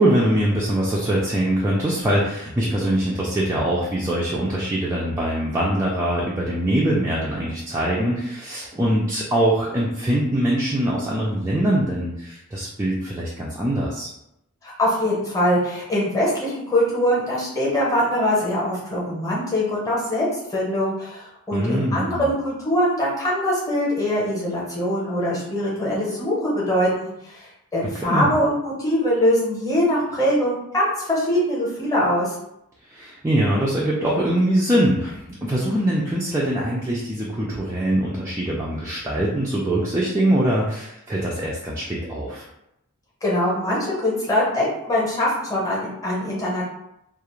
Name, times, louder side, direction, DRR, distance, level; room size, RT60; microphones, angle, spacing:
voice 1, 0.0-14.1 21.5-22.3 28.1-28.3 32.9-42.4, right 1 dB, 15° right, -5 dB, 0.3 m, -23 dB
voice 2, 14.6-20.3 20.5-32.3 43.2-46.6, equal, 15° left, -5 dB, 0.8 m, -22 dB
2.3 x 2.0 x 2.9 m, 0.82 s
head